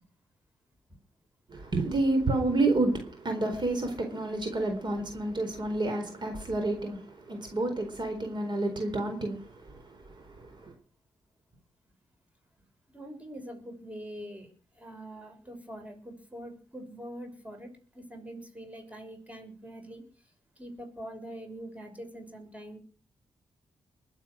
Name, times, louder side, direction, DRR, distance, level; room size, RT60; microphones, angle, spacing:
voice 1, 1.5-10.7, right 2 dB, 50° right, 4.2 m, -30 dB
voice 2, 12.9-20.3 20.6-22.8, equal, 15° right, 6.4 m, -44 dB
21.5 x 8.3 x 6.4 m
cardioid pair, 75°, 10 cm